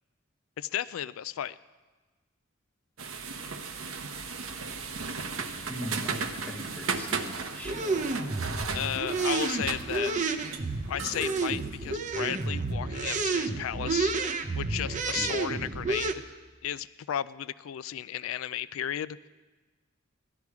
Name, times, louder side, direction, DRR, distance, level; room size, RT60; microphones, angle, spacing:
voice 1, 0.6-1.6 8.7-10.1 10.9-14.1 14.5-16.2 16.6-19.2, left 10 dB, 75° left, 16 dB, 0.3 m, -34 dB
sound 1, 3.0-12.5, right 5 dB, 75° right, 0.9 m, -36 dB
voice 2, 5.7-6.2 6.4-8.1 15.2-15.4, equal, 5° left, 1 dB, 1.1 m, -40 dB
sound 2, 7.6-16.1, right 3 dB, 35° right, 0.6 m, -30 dB
16.0 x 12.0 x 4.8 m, 1.3 s
head